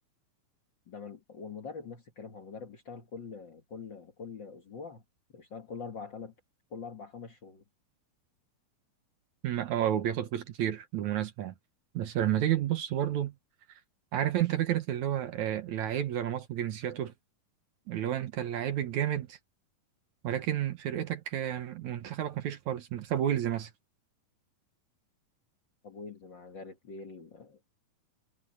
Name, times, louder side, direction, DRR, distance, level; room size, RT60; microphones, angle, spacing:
voice 1, 0.9-5.0 5.3-6.4 6.7-7.6 25.8-27.7, left 5 dB, 45° left, 1.7 m, -44 dB
voice 2, 9.4-11.5 11.9-13.3 14.1-17.1 17.9-19.4 20.2-23.7, right 11 dB, 65° right, 2.3 m, -31 dB
omnidirectional pair, 4.0 m